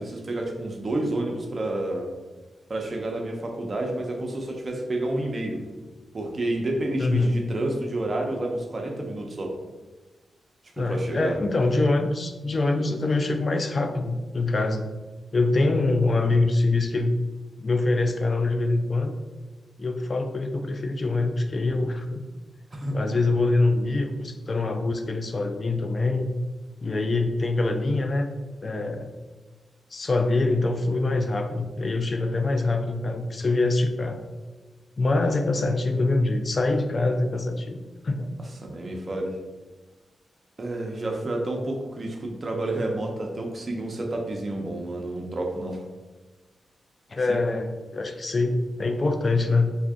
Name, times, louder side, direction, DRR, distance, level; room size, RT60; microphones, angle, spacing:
voice 1, 0.0-2.1 2.7-5.7 6.1-9.6 10.8-11.4 22.7-23.0 38.6-39.4 40.6-45.9 47.3-47.4, right 1 dB, 40° right, 1 dB, 0.7 m, -29 dB
voice 2, 7.0-7.4 10.8-14.9 15.3-17.1 17.6-19.1 19.8-22.2 22.9-26.3 26.8-28.3 28.6-29.1 29.9-34.2 35.0-38.3 47.1-49.7, left 2 dB, 40° left, 6 dB, 0.4 m, -24 dB
3.5 x 2.6 x 3.5 m, 1.2 s
cardioid pair, 70°, 0 cm